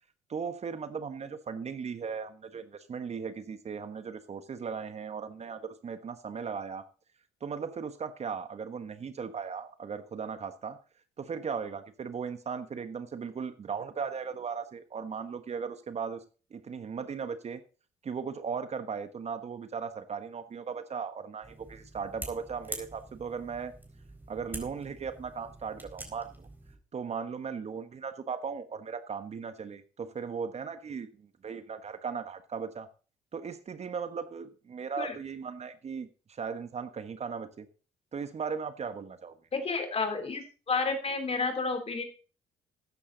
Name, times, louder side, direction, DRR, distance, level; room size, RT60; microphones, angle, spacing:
voice 1, 0.3-6.8 7.4-10.8 11.2-16.2 16.5-17.6 18.0-23.7 24.3-26.5 26.9-32.9 33.3-37.7 38.1-39.3, right 6 dB, 45° right, 11 dB, 1.3 m, -37 dB
sound 1, 21.4-26.8, right 1 dB, 10° right, 4.2 m, -45 dB
voice 2, 39.5-42.0, left 4 dB, 40° left, 8 dB, 3.2 m, -31 dB
13.5 x 10.0 x 3.9 m, 0.36 s
supercardioid pair, 65°, 16 cm